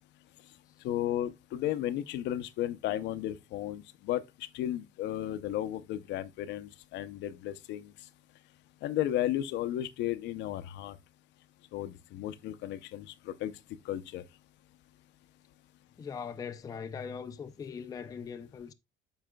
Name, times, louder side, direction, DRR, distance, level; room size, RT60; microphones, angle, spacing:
voice 1, 0.8-4.2 4.5-7.9 8.8-11.0 11.7-13.5 13.8-14.2, left 12 dB, 65° left, 0.6 m, -34 dB
voice 2, 16.0-18.7, left 6 dB, 20° left, 0.4 m, -40 dB
12.5 x 4.9 x 2.2 m
cardioid pair, 160°, 20 cm